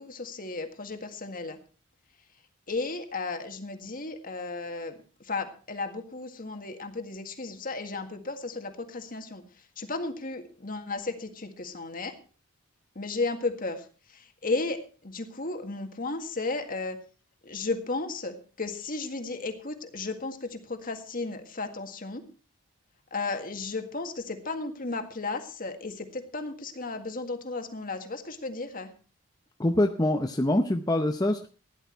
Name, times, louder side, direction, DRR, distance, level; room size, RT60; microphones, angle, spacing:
voice 1, 0.0-1.6 2.7-12.2 13.0-17.0 17.4-22.2 23.1-28.9, left 3 dB, 40° left, 6 dB, 1.9 m, -34 dB
voice 2, 29.6-31.5, left 1 dB, 15° left, 4 dB, 0.7 m, -24 dB
16.0 x 11.0 x 4.5 m, 0.38 s
head